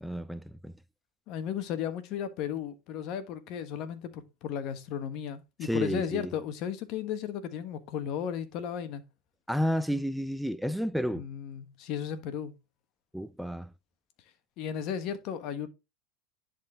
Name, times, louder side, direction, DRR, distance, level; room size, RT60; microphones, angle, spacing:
voice 1, 0.0-0.7 5.6-6.3 9.5-11.3 13.1-13.7, equal, ahead, 0.5 m, -31 dB
voice 2, 1.3-9.0 11.1-12.5 14.6-15.7, left 9 dB, 55° left, 1.3 m, -35 dB
10.5 x 4.3 x 3.6 m
hypercardioid pair, 95°, 0 cm